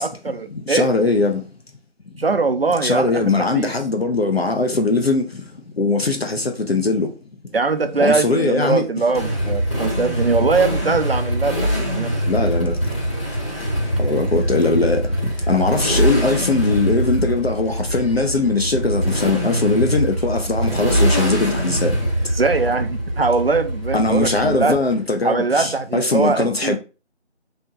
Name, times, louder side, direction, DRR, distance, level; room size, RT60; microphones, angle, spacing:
voice 1, 0.0-0.9 2.2-3.7 7.5-12.2 22.4-24.8 25.2-26.8, right 4 dB, 55° right, 0.5 m, -21 dB
voice 2, 0.5-1.4 2.8-5.4 5.8-7.1 8.0-8.9 12.3-12.8 14.0-15.0 15.5-22.0 23.9-26.8, left 3 dB, 60° left, 0.6 m, -20 dB
Motorcycle, 9.1-24.9, equal, 25° left, 1.3 m, -23 dB
3.4 x 2.7 x 2.8 m
figure-of-eight pair, 170°, 35 cm